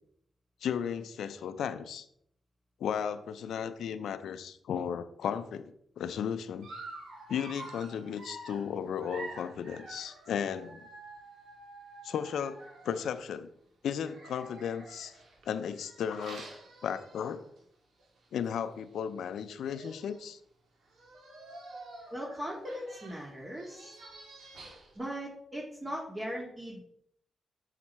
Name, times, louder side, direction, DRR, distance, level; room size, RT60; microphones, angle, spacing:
voice 1, 0.6-2.1 2.8-6.7 7.3-10.9 12.0-12.6 12.8-13.5 13.8-15.1 15.5-16.5 16.8-17.4 18.3-20.4, left 8 dB, 80° left, 12 dB, 0.5 m, -35 dB
Dog, 6.6-13.2 14.0-17.6 18.0-18.2 18.4-18.5 19.4-19.5 19.7-20.2 20.9-25.0, right 2 dB, 80° right, 1.8 m, -48 dB
voice 2, 22.1-23.9 25.0-26.8, equal, 30° right, -3 dB, 2.0 m, -39 dB
7.4 x 5.9 x 4.2 m, 0.70 s
supercardioid pair, 45°, 0 cm